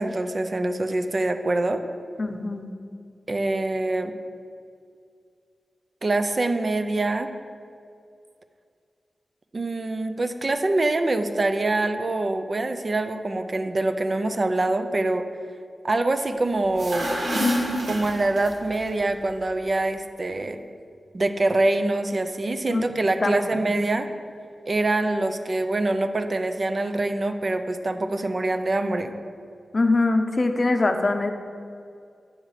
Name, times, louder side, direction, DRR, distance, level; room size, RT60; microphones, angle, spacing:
voice 1, 0.0-1.8 3.3-4.2 6.0-7.3 9.5-15.3 15.8-17.1 17.8-20.6 21.1-24.1 24.7-29.1, right 2 dB, 45° right, 8 dB, 0.5 m, -25 dB
voice 2, 2.2-2.7 22.7-22.8 23.2-23.6 29.7-31.3, left 2 dB, 45° left, 6 dB, 0.6 m, -23 dB
sound 1, 16.6-18.8, equal, 85° right, 1.6 m, -27 dB
7.9 x 5.7 x 4.8 m, 2.3 s
wide cardioid pair, 85°, 0 cm